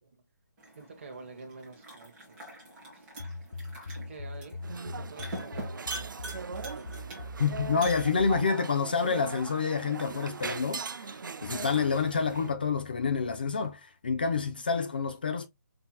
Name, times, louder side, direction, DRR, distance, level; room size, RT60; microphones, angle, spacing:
sound 1, 0.6-8.6, right 1 dB, 10° right, 1.1 m, -45 dB
voice 1, 0.7-2.6 2.9-3.1 4.0-4.6 5.0-7.3, right 3 dB, 40° right, 1.2 m, -48 dB
sound 2, 3.2-8.5, left 1 dB, 85° left, 0.7 m, -41 dB
sound 3, 4.6-12.5, right 5 dB, 75° right, 0.5 m, -40 dB
voice 2, 7.4-15.5, left 5 dB, 30° left, 0.4 m, -28 dB
5.5 x 2.8 x 2.3 m
hypercardioid pair, 170°, 11 cm